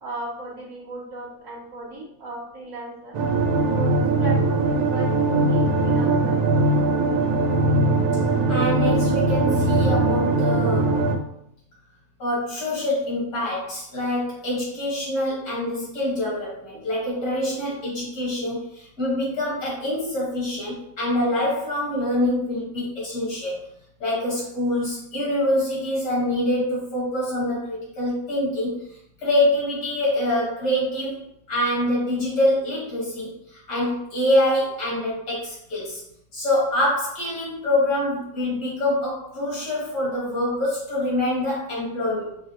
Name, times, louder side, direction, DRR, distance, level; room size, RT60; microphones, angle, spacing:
voice 1, 0.0-3.2 3.7-6.9, right 2 dB, 65° right, -6 dB, 1.2 m, -36 dB
sound 1, 3.1-11.2, right 2 dB, 85° right, 1.2 m, -20 dB
voice 2, 8.5-11.0 12.2-23.6 24.0-36.0 36.3-42.4, left 1 dB, 70° left, -7 dB, 2.1 m, -25 dB
6.0 x 2.1 x 2.8 m, 0.76 s
omnidirectional pair, 1.6 m